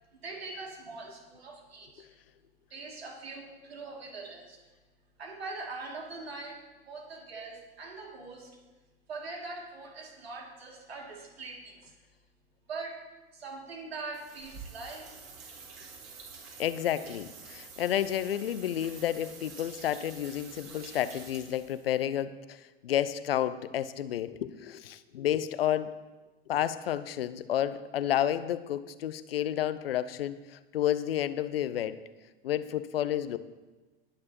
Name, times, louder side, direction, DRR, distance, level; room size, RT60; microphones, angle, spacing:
voice 1, 0.2-2.1 2.7-4.6 5.2-8.6 9.1-11.9 12.7-13.0 13.3-15.3, right 3 dB, 75° right, 0 dB, 2.6 m, -42 dB
sound 1, 14.1-22.0, right 5 dB, 45° right, 3.3 m, -48 dB
voice 2, 16.6-25.9 26.5-32.0 32.4-33.4, left 11 dB, 65° left, 14 dB, 0.7 m, -31 dB
20.0 x 9.6 x 3.0 m, 1.2 s
figure-of-eight pair, 85°, 31 cm